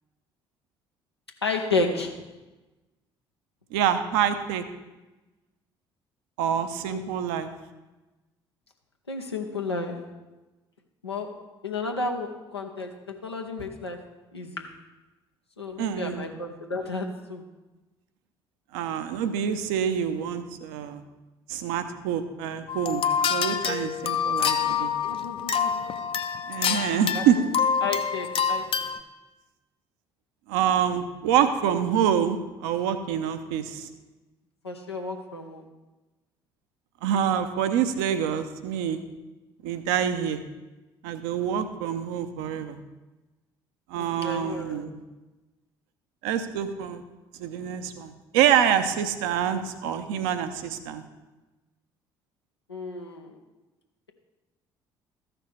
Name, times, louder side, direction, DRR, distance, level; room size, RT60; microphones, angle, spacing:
voice 1, 1.4-2.3 6.9-7.1 9.1-10.1 11.0-14.0 14.3-14.8 15.6-17.4 25.0-25.9 27.1-27.2 27.8-28.9 34.6-35.7 44.0-44.9 52.7-53.3, left 3 dB, 85° left, 2 dB, 0.8 m, -32 dB
voice 2, 3.7-4.6 6.4-7.5 15.8-16.3 18.7-21.0 21.5-24.9 26.5-27.4 30.5-33.9 37.0-39.0 39.6-40.4 41.0-42.8 43.9-45.0 46.2-47.0 47.4-51.0, right 9 dB, 65° right, 9 dB, 0.7 m, -26 dB
sound 1, 22.7-29.0, left 7 dB, 45° left, 0.6 m, -27 dB
14.0 x 6.0 x 3.3 m, 1.1 s
figure-of-eight pair, 50°, 13 cm